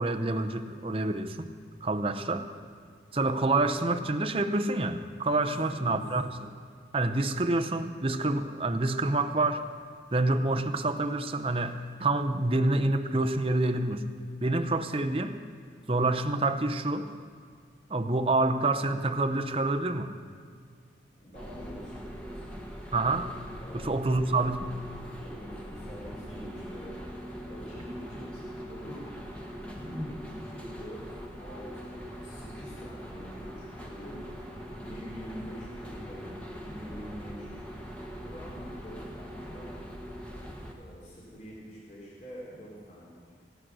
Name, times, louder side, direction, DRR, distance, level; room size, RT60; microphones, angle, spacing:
voice 1, 0.0-1.5 1.8-2.5 3.1-6.5 6.9-9.6 10.1-15.4 15.9-17.1 17.9-20.1 22.9-23.3 23.7-24.7, right 2 dB, 30° right, 8 dB, 0.7 m, -27 dB
voice 2, 5.4-6.0 21.2-22.6 23.6-23.9 25.2-27.0 27.5-37.6 38.2-39.8 40.8-43.3, equal, 40° left, -5 dB, 3.5 m, -45 dB
Angel - Longest Escalator going down, 21.3-40.7, equal, 5° left, 1.3 m, -42 dB
16.5 x 10.0 x 6.2 m, 2.1 s
head